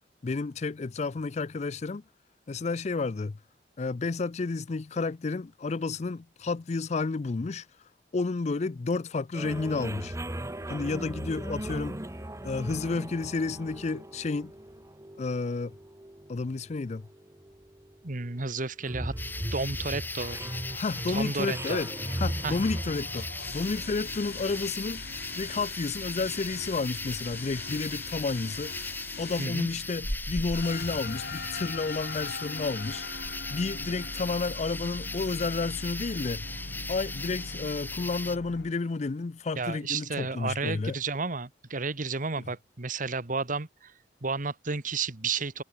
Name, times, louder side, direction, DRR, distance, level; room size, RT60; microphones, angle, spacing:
voice 1, 0.2-2.0 2.5-3.4 3.8-7.7 8.1-10.2 10.7-12.0 12.4-14.5 15.2-15.7 16.3-17.1 20.7-21.9 22.2-23.3 23.5-25.0 25.4-28.7 29.2-33.0 33.5-36.5 36.9-41.0, left 3 dB, 40° left, 0.5 m, -31 dB
sound 1, 9.3-24.7, right 1 dB, 15° right, 1.3 m, -38 dB
voice 2, 18.0-19.1 19.5-20.4 21.1-21.8 22.4-22.6 29.4-29.7 39.5-43.9 44.2-45.6, right 4 dB, 50° right, 1.5 m, -32 dB
sound 2, 19.2-38.4, left 2 dB, 10° left, 2.8 m, -38 dB
sound 3, 19.8-38.7, left 3 dB, 60° left, 2.3 m, -42 dB
head